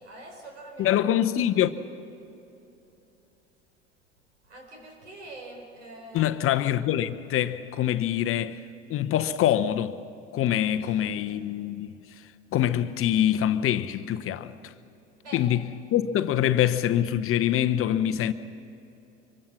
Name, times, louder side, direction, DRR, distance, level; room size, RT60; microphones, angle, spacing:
voice 1, 0.0-1.0 1.4-1.5 4.4-6.5 10.8-11.4 15.2-15.5, right 1 dB, 80° right, 4.9 m, -45 dB
voice 2, 0.8-1.7 6.1-8.6 8.9-10.0 10.3-11.9 12.5-14.7 15.3-15.6 15.9-18.3, left 11 dB, 40° left, 0.9 m, -24 dB
25.0 x 23.5 x 6.2 m
figure-of-eight pair, 75°, 35 cm